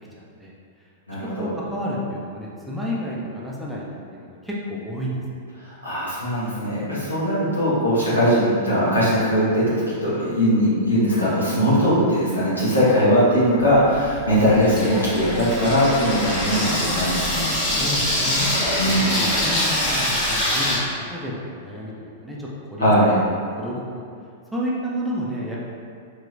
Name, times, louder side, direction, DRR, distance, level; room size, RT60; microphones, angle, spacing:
voice 1, 0.1-0.5 0.8-0.9 1.4-3.8 4.1-5.4 11.7-11.9 17.7-22.9 23.6-24.0 24.5-25.6, equal, 5° right, -6 dB, 0.5 m, -31 dB
voice 2, 1.1-1.5 5.6-17.5 18.8-19.2 22.8-23.1, equal, 85° left, -10 dB, 1.1 m, -20 dB
Water tap faucet / Sink (filling or washing), 13.6-20.8, left 1 dB, 35° left, 1.2 m, -24 dB
3.0 x 2.9 x 2.4 m, 2.2 s
figure-of-eight pair, 100°, 0 cm